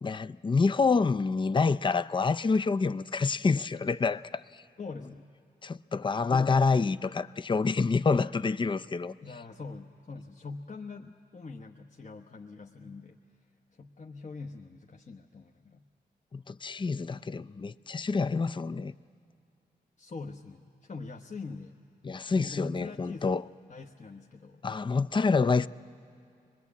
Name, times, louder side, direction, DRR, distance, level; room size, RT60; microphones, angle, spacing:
voice 1, 0.0-4.4 5.6-9.2 16.3-18.9 22.0-23.4 24.6-25.7, left 4 dB, 25° left, 0.5 m, -27 dB
voice 2, 4.8-5.2 6.3-6.9 9.2-13.2 13.7-15.8 20.0-21.8 22.3-24.7, left 4 dB, 45° left, 1.0 m, -43 dB
22.5 x 20.5 x 8.4 m
cardioid pair, 45°, 18 cm